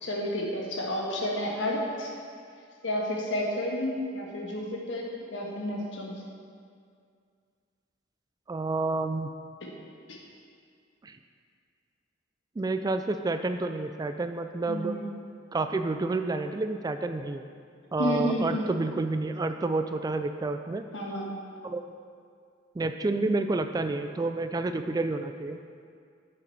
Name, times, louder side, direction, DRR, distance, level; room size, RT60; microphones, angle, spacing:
voice 1, 0.0-2.1 2.8-6.1 9.6-9.7 10.1-10.2 14.7-15.1 18.0-18.7 20.9-21.3, left 1 dB, 80° left, -1 dB, 1.6 m, -31 dB
voice 2, 8.5-9.3 11.0-11.2 12.6-14.9 15.5-17.4 17.9-20.8 21.6-21.8 22.8-25.6, right 3 dB, 20° right, 8 dB, 0.3 m, -29 dB
11.0 x 6.8 x 4.2 m, 2.2 s
head